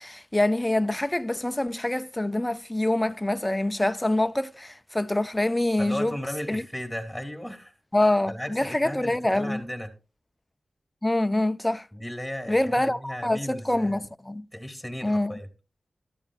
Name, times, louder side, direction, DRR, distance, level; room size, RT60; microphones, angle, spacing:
voice 1, 0.0-6.1 6.5-6.6 7.9-9.6 11.0-11.9 12.5-14.5 15.0-15.3, left 1 dB, 15° left, 0.4 m, -25 dB
voice 2, 5.8-7.7 8.3-9.9 11.9-14.0 14.5-15.5, equal, 5° right, 3.3 m, -35 dB
13.5 x 12.5 x 2.5 m
cardioid pair, 50°, 0 cm